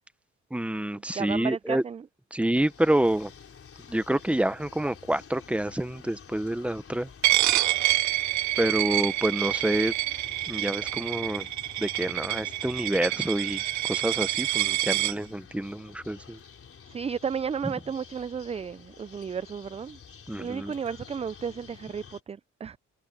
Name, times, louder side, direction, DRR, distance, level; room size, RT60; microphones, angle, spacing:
voice 1, 0.5-1.8 2.3-3.3 3.9-7.1 8.6-9.9 10.5-11.5 11.8-16.4 20.3-20.7, right 1 dB, 5° right, 0.9 m, -28 dB
voice 2, 1.1-2.0 16.9-20.0 20.4-22.8, right 7 dB, 20° right, 0.4 m, -33 dB
sound 1, 2.6-22.2, left 7 dB, 45° left, 4.1 m, -49 dB
Coin (dropping), 7.2-15.1, right 16 dB, 70° right, 0.6 m, -27 dB
cardioid pair, 90°, 30 cm